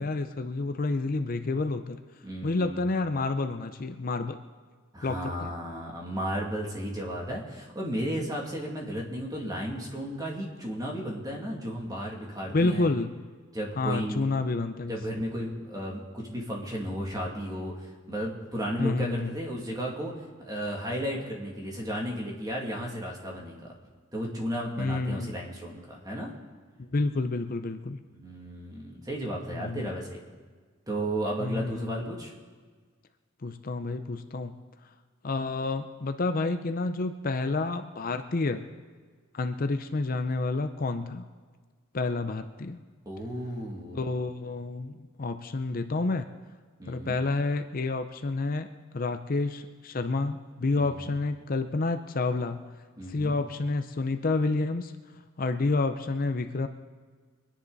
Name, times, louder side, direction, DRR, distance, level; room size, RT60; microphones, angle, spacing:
voice 1, 0.0-2.0 2.4-4.4 5.0-5.5 12.5-13.1 13.8-15.0 18.8-19.3 24.8-25.3 26.8-28.0 29.5-29.9 31.4-32.1 33.4-34.5 35.2-38.7 39.3-41.3 41.9-42.8 43.9-46.3 46.9-52.6 53.1-54.9 55.4-56.7, left 3 dB, 45° left, 8 dB, 0.6 m, -29 dB
voice 2, 2.2-2.8 4.9-12.9 13.5-14.4 14.9-20.1 20.4-23.7 24.1-26.3 28.1-30.2 30.9-32.3 43.1-44.0 46.8-47.2 50.8-51.1 53.0-53.4, equal, 20° right, -1 dB, 2.4 m, -34 dB
24.5 x 10.0 x 4.1 m, 1.5 s
head